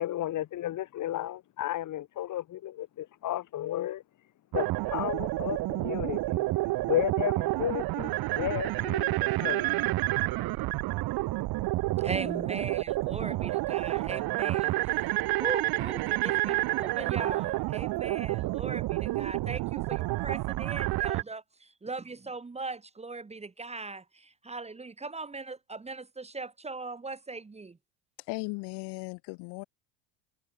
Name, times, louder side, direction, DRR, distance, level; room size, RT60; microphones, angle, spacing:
voice 1, 0.0-4.0 4.5-6.5 6.9-9.7, left 13 dB, 45° left, 2.2 m, -33 dB
sound 1, 4.5-21.2, right 19 dB, 55° right, 2.6 m, -29 dB
voice 2, 12.0-27.8, right 3 dB, 15° right, 2.0 m, -39 dB
voice 3, 28.3-29.6, left 29 dB, 65° left, 4.7 m, -37 dB
supercardioid pair, 95°, 43 cm